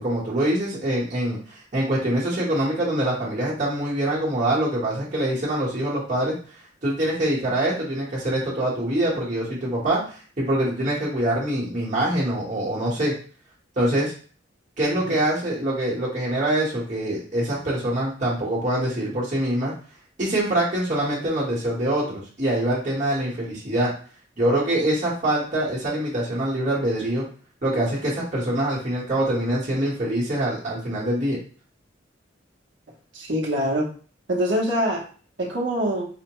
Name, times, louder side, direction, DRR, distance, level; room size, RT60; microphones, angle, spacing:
voice 1, 0.0-6.3 6.8-13.1 13.8-14.1 14.8-19.7 20.2-23.9 24.4-27.2 27.6-31.4, right 1 dB, 40° right, -7 dB, 1.2 m, -24 dB
voice 2, 33.1-33.9 34.3-35.0 35.4-36.1, equal, 65° right, -3 dB, 0.9 m, -24 dB
4.2 x 2.1 x 2.9 m, 0.42 s
head